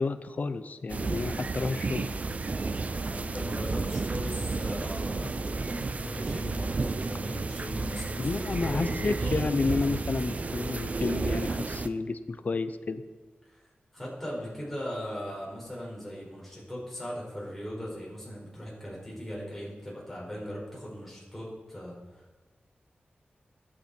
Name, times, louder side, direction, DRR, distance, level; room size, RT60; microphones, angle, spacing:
voice 1, 0.0-2.1 8.2-13.0, left 3 dB, 45° left, 11 dB, 0.7 m, -30 dB
sound 1, 0.9-11.9, right 3 dB, 40° right, 0.6 m, -32 dB
voice 2, 2.9-9.5 13.5-13.6 13.9-22.4, equal, 5° left, -5 dB, 5.7 m, -39 dB
21.0 x 8.7 x 4.5 m, 1.3 s
wide cardioid pair, 140°, 4 cm